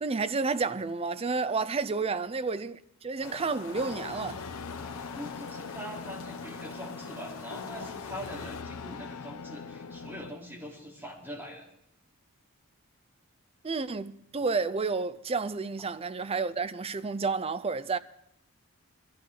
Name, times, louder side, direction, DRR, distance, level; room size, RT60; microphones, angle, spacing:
voice 1, 0.0-4.4 13.6-18.0, right 4 dB, 25° right, 0.5 m, -30 dB
sound 1, 3.2-8.6, left 4 dB, 65° left, 1.7 m, -44 dB
sound 2, 3.7-10.3, left 5 dB, 80° left, 0.7 m, -42 dB
voice 2, 5.2-11.6, equal, 10° right, 3.5 m, -43 dB
22.5 x 13.0 x 3.8 m
head